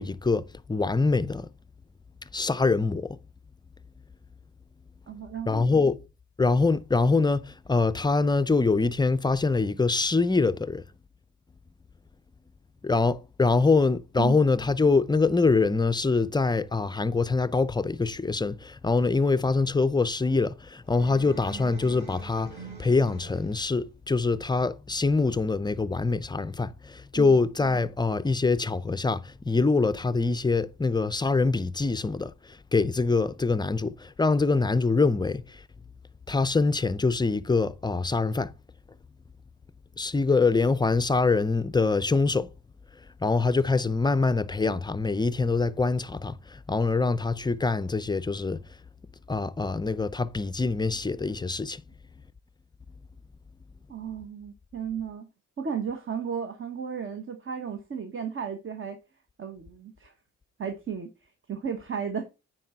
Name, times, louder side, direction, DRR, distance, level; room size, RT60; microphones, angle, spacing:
voice 1, 0.0-1.5 2.3-3.2 5.5-6.0 6.4-10.8 12.8-22.5 22.8-32.3 32.7-35.4 36.3-38.5 40.0-42.5 43.2-48.6 49.3-51.8, left 3 dB, 15° left, 0.4 m, -24 dB
voice 2, 5.1-5.7 14.2-14.4 27.1-27.3 53.9-55.3 55.6-59.0 59.4-60.1 60.6-62.3, right 7 dB, 45° right, 1.3 m, -34 dB
sound 1, 20.8-23.7, right 2 dB, 20° right, 4.6 m, -44 dB
9.3 x 4.7 x 4.4 m
cardioid pair, 90°, 30 cm